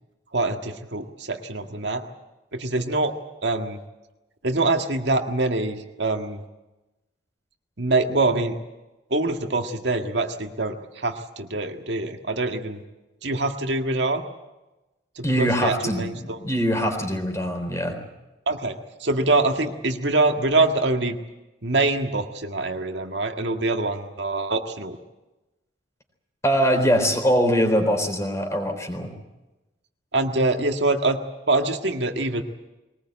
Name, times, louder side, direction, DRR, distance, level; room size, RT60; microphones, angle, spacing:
voice 1, 0.3-2.0 2.5-3.1 3.4-3.8 4.4-6.4 7.8-8.6 9.1-12.8 13.2-14.2 15.2-16.4 18.5-21.2 21.6-25.0 30.1-31.2 31.5-32.4, right 2 dB, 70° right, 5 dB, 1.8 m, -24 dB
voice 2, 15.2-18.0 26.4-29.1, equal, 15° left, 5 dB, 3.8 m, -22 dB
22.0 x 19.5 x 8.9 m, 1.0 s
head